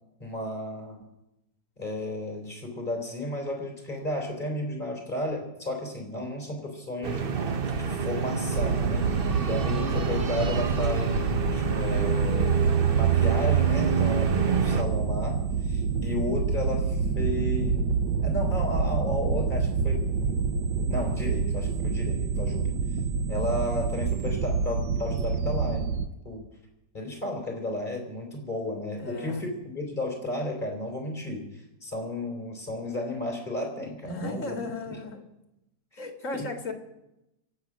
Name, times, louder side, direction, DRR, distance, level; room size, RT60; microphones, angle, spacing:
voice 1, 0.2-1.0 1.8-7.2 7.8-9.1 9.5-17.8 18.2-20.4 20.9-22.8 23.3-26.4 26.9-35.0 35.9-36.0 36.3-36.5, left 1 dB, 25° left, 1 dB, 3.9 m, -33 dB
sound 1, 7.0-14.8, right 6 dB, 40° right, 0.9 m, -26 dB
sound 2, 8.6-26.1, right 5 dB, 90° right, 1.5 m, -28 dB
voice 2, 29.0-29.4 34.0-35.2 36.0-36.7, left 2 dB, 45° left, 4 dB, 2.3 m, -35 dB
26.5 x 8.8 x 6.2 m, 0.90 s
omnidirectional pair, 1.8 m